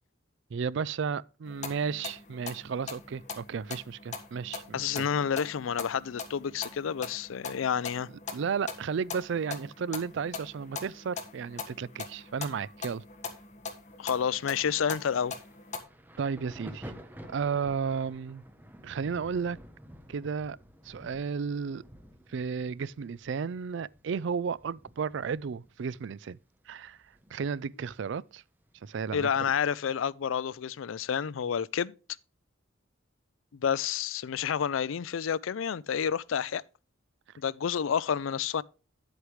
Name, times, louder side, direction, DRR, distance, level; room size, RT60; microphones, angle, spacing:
voice 1, 0.5-5.1 8.3-13.0 16.2-16.9 17.3-18.4 18.8-19.6 20.1-20.6 20.9-21.8 22.3-26.4 26.7-27.0 27.3-28.4 28.8-29.3, right 6 dB, 65° right, 0.4 m, -33 dB
sound 1, 1.5-15.8, left 5 dB, 40° left, 1.5 m, -42 dB
voice 2, 4.7-8.1 14.0-15.3 29.1-31.9 33.6-36.6 37.4-38.6, left 7 dB, 85° left, 0.4 m, -29 dB
Thunder, 14.4-27.8 28.0-29.4 30.2-30.4, equal, 10° right, 1.0 m, -51 dB
9.9 x 8.0 x 3.1 m
head